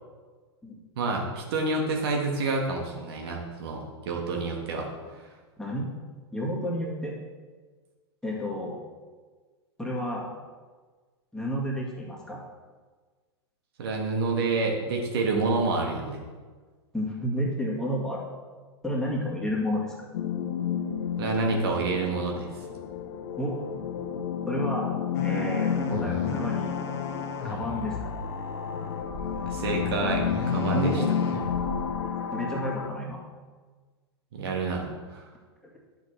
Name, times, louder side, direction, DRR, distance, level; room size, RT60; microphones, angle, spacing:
voice 1, 1.0-4.9 13.8-16.2 21.2-22.5 29.5-31.0 34.3-34.9 35.1-35.3, right 3 dB, 60° right, 0 dB, 1.6 m, -28 dB
voice 2, 5.6-6.0 6.3-7.1 8.2-8.7 9.8-10.3 11.3-12.4 16.9-18.3 18.8-19.9 23.4-23.6 24.5-26.8 27.4-28.1 30.7-31.1 32.3-33.2, equal, 5° left, -4 dB, 1.9 m, -31 dB
sound 1, 20.1-32.9, left 7 dB, 65° left, 0.7 m, -31 dB
sound 2, 25.1-31.9, left 4 dB, 45° left, 1.4 m, -36 dB
10.5 x 6.8 x 3.3 m, 1.4 s
hypercardioid pair, 105°, 15 cm